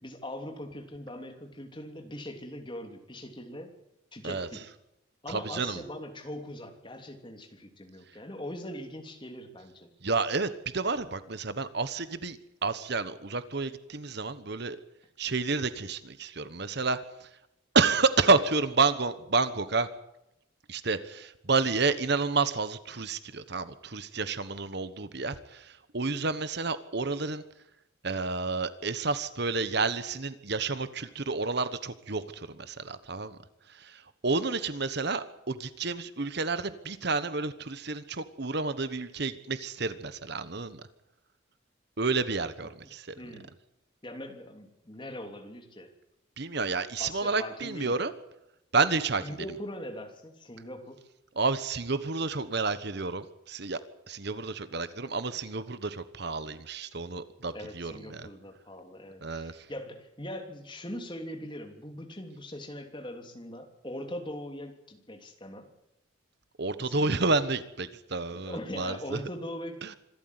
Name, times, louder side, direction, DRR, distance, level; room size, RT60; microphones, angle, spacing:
voice 1, 0.0-3.7 4.1-4.6 5.2-9.9 42.6-42.7 43.2-43.5 44.0-45.9 47.0-48.0 49.2-51.0 57.5-65.7 66.8-67.1 68.3-69.8, left 1 dB, 25° left, 5 dB, 3.0 m, -41 dB
voice 2, 5.3-5.8 10.0-14.8 15.2-17.0 17.7-19.9 20.7-27.4 28.0-33.4 33.8-40.8 42.0-43.1 46.4-48.1 48.7-49.3 51.4-53.8 54.1-58.3 59.2-59.5 66.6-69.2, right 4 dB, 55° right, 13 dB, 1.2 m, -30 dB
25.5 x 13.0 x 9.6 m, 0.86 s
head